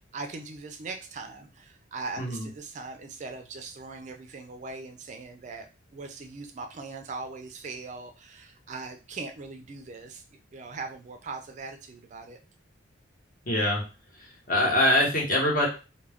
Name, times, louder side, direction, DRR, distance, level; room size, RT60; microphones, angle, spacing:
voice 1, 0.0-5.7 5.9-10.2 10.5-12.4, right 3 dB, 40° right, 5 dB, 0.3 m, -40 dB
voice 2, 13.5-13.8 14.2-15.7, left 1 dB, 45° left, -2 dB, 1.0 m, -24 dB
2.3 x 2.2 x 3.4 m, 0.31 s
head